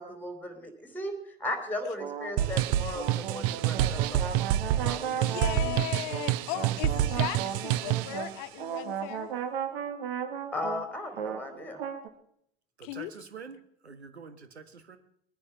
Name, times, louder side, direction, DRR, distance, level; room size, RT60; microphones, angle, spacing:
voice 1, 0.0-4.3 4.5-5.7 10.5-11.8, left 1 dB, 5° left, 7 dB, 3.3 m, -37 dB
sound 1, 2.0-12.1, right 8 dB, 65° right, 1.8 m, -36 dB
sound 2, 2.4-8.2, right 12 dB, 45° right, 0.7 m, -28 dB
voice 2, 5.0-9.3 12.8-13.1, left 15 dB, 50° left, 12 dB, 1.3 m, -37 dB
voice 3, 12.8-15.0, right 5 dB, 85° right, 9 dB, 1.7 m, -46 dB
21.0 x 9.7 x 5.8 m, 0.69 s
figure-of-eight pair, 85°, 32 cm